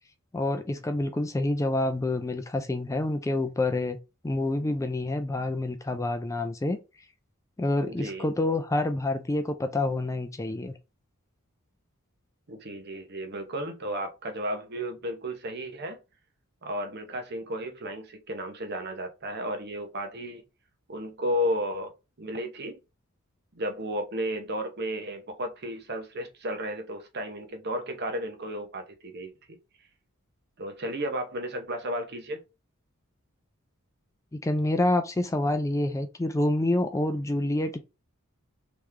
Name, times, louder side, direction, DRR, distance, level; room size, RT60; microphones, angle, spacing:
voice 1, 0.3-4.0 4.2-6.8 7.6-10.7 34.3-37.8, left 2 dB, 15° left, 0.3 m, -27 dB
voice 2, 7.9-8.2 12.5-16.0 16.6-20.4 20.9-21.9 22.2-22.8 23.5-29.3 30.6-32.4, equal, 50° right, 0.8 m, -33 dB
3.3 x 3.0 x 3.6 m
head